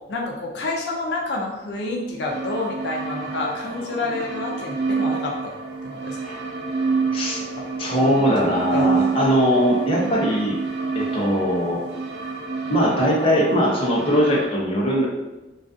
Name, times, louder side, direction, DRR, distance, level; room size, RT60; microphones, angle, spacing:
voice 1, 0.1-5.5 5.9-6.2 7.6-7.7 7.9-8.1 8.7-9.1, left 2 dB, 80° left, -1 dB, 0.4 m, -28 dB
sound 1, 2.3-14.5, right 4 dB, 70° right, 0.4 m, -28 dB
voice 2, 7.8-10.6 10.9-11.8 12.7-15.1, equal, 30° left, -4 dB, 0.6 m, -20 dB
2.4 x 2.3 x 2.4 m, 1.0 s
head